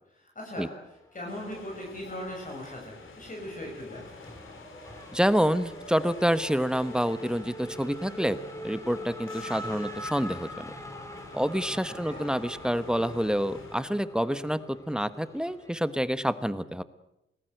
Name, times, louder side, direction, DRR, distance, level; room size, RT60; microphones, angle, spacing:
voice 1, 0.1-0.7 1.1-4.4 12.0-12.2, left 1 dB, 40° left, -1 dB, 6.9 m, -39 dB
Race car auto racing / Accelerating revving vroom, 1.1-2.1 2.4-16.1, equal, 15° left, 4.1 m, -43 dB
sound 1, 1.3-13.8, left 3 dB, 90° left, 4.2 m, -49 dB
voice 2, 5.1-8.4 8.6-10.7 11.3-16.8, equal, 5° right, 13 dB, 1.1 m, -28 dB
27.5 x 20.0 x 7.9 m, 0.86 s
wide cardioid pair, 115°, 20 cm